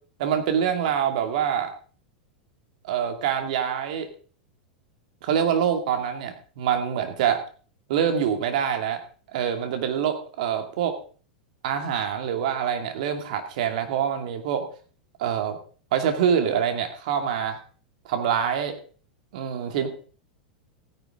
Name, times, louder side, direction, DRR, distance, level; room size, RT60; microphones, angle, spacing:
voice 1, 0.2-1.7 2.8-4.1 5.2-7.4 7.9-9.0 9.3-11.0 11.6-14.7 15.2-15.6 15.9-17.6 18.0-18.8 19.3-19.9, right 8 dB, 65° right, 6 dB, 2.5 m, -25 dB
15.5 x 10.0 x 3.8 m, 0.40 s
hypercardioid pair, 95°, 5 cm